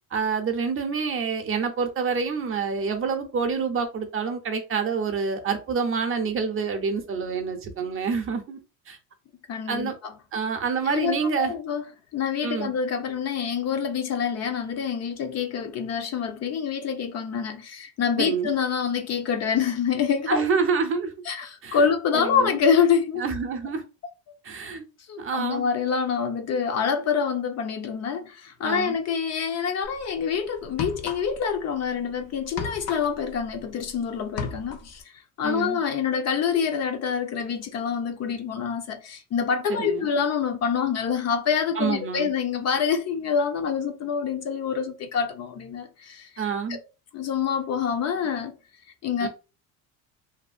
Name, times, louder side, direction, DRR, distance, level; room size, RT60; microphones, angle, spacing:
voice 1, 0.1-8.6 8.9-9.0 9.7-9.9 10.3-11.5 12.4-12.7 18.2-18.5 20.3-21.1 21.6-21.8 22.1-22.6 23.2-23.8 24.4-24.8 25.2-25.6 28.6-29.0 35.4-35.8 39.7-40.1 41.8-42.3 46.4-46.8 49.2-49.3, right 5 dB, 35° right, 0.6 m, -27 dB
voice 2, 9.5-10.1 10.8-11.8 12.1-20.4 21.3-23.3 25.1-35.0 35.4-46.3 46.7-46.8 47.1-48.5 49.0-49.3, left 6 dB, 40° left, 0.5 m, -26 dB
sound 1, 29.8-30.0 30.6-31.6 31.8-33.9 34.2-35.0, left 5 dB, 70° left, 0.8 m, -35 dB
2.7 x 2.4 x 2.4 m
supercardioid pair, 105°, 40 cm